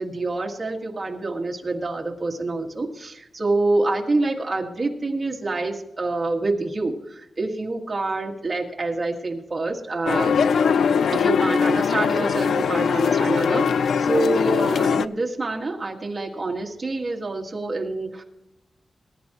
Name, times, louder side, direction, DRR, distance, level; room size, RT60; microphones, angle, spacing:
voice 1, 0.0-10.3 11.1-18.2, right 2 dB, 25° right, 0 dB, 1.7 m, -27 dB
sound 1, 10.1-15.1, left 6 dB, 90° left, 0.4 m, -21 dB
20.0 x 10.5 x 3.0 m, 0.87 s
wide cardioid pair, 170°, 0 cm